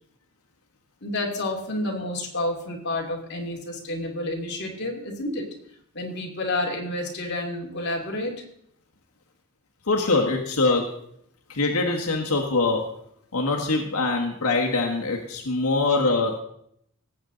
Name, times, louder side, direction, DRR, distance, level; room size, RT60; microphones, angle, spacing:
voice 1, 1.0-5.5 5.9-8.4, left 1 dB, 50° left, 0 dB, 2.6 m, -29 dB
voice 2, 9.9-10.9 11.5-12.8 13.3-16.4, left 3 dB, 85° left, 1 dB, 1.5 m, -23 dB
18.5 x 8.0 x 3.9 m, 0.71 s
head